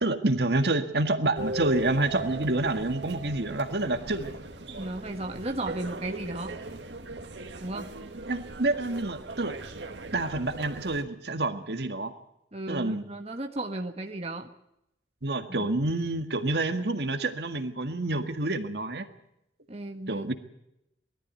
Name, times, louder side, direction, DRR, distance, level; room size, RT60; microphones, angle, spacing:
voice 1, 0.0-4.3 8.3-9.6 10.1-12.1 12.7-13.1 15.2-19.1 20.1-20.3, right 2 dB, 65° right, 8 dB, 1.8 m, -28 dB
sound 1, 1.4-11.0, right 2 dB, 85° right, 2.2 m, -39 dB
voice 2, 4.7-6.6 7.6-7.9 12.5-14.5 15.5-15.7 19.7-20.2, right 2 dB, 35° right, 3 dB, 1.5 m, -35 dB
21.0 x 13.5 x 9.1 m, 0.83 s
head